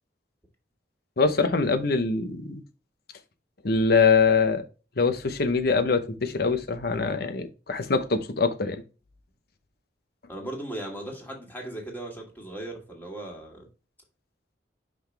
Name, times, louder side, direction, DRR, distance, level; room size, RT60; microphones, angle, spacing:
voice 1, 1.2-2.6 3.6-4.6 5.0-8.8, left 4 dB, 55° left, 0.9 m, -23 dB
voice 2, 10.3-13.7, right 1 dB, 10° left, 2.1 m, -37 dB
5.9 x 5.1 x 3.4 m
head